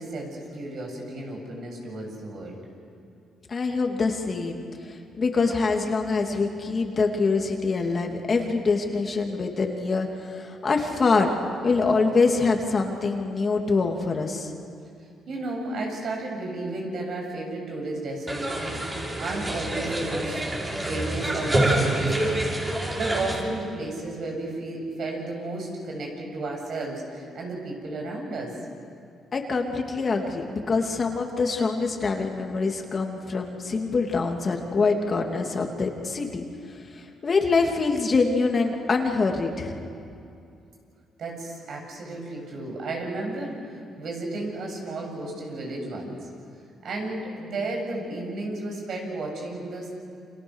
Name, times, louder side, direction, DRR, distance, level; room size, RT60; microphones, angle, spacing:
voice 1, 0.0-2.6 15.3-20.4 20.9-22.5 23.0-28.6 41.2-43.6 44.0-46.2 46.8-49.9, right 2 dB, 65° right, 0 dB, 7.8 m, -33 dB
voice 2, 3.5-11.3 11.6-14.5 29.3-36.4 36.9-39.7, left 4 dB, 40° left, 2 dB, 3.0 m, -25 dB
sound 1, 18.3-23.4, right 1 dB, 25° right, 5.8 m, -27 dB
29.5 x 26.5 x 6.6 m, 2.5 s
cardioid pair, 90°, 0 cm